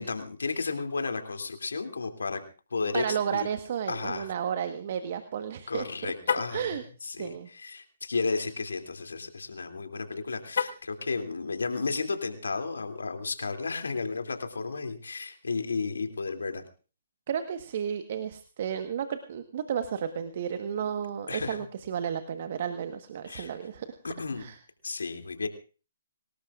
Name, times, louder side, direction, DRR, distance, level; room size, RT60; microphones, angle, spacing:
voice 1, 0.0-2.4 2.7-3.5 3.9-4.3 5.7-6.7 7.0-16.6 21.3-21.6 23.2-23.5 24.0-24.5 24.8-25.5, left 4 dB, 80° left, 5 dB, 2.8 m, -33 dB
voice 2, 2.9-6.1 6.5-7.5 17.3-23.9 24.4-24.6, right 8 dB, 50° right, 9 dB, 1.3 m, -33 dB
Car, 6.2-6.6 10.5-11.0, left 6 dB, 65° left, 1.2 m, -30 dB
25.5 x 18.5 x 2.5 m, 0.37 s
figure-of-eight pair, 135°, 0 cm